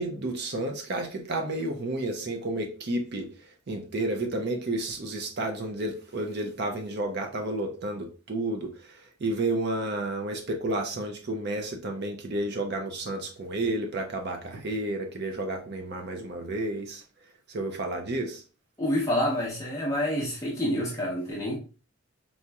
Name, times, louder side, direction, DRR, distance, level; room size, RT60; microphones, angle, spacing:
voice 1, 0.0-3.3 3.7-8.7 9.2-17.0 17.5-18.4, right 2 dB, 45° right, 0.5 m, -31 dB
voice 2, 18.8-21.6, left 1 dB, 15° left, 0.6 m, -28 dB
4.1 x 2.8 x 2.3 m
head